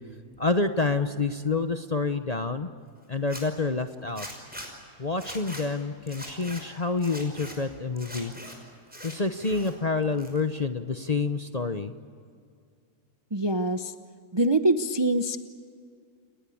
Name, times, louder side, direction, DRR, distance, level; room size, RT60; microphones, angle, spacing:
voice 1, 0.4-2.7 3.1-4.3 5.0-8.3 9.0-11.9, left 3 dB, 30° left, 8 dB, 0.8 m, -28 dB
Zipper (clothing), 3.2-3.4 4.2-4.7 5.1-5.6 6.1-6.6 7.0-7.6 8.0-8.5 8.9-9.7 10.0-10.6, equal, 5° right, 5.7 m, -41 dB
voice 2, 13.3-13.9 14.3-15.4, right 2 dB, 25° right, 8 dB, 0.6 m, -24 dB
30.0 x 20.0 x 8.6 m, 2.3 s
omnidirectional pair, 1.7 m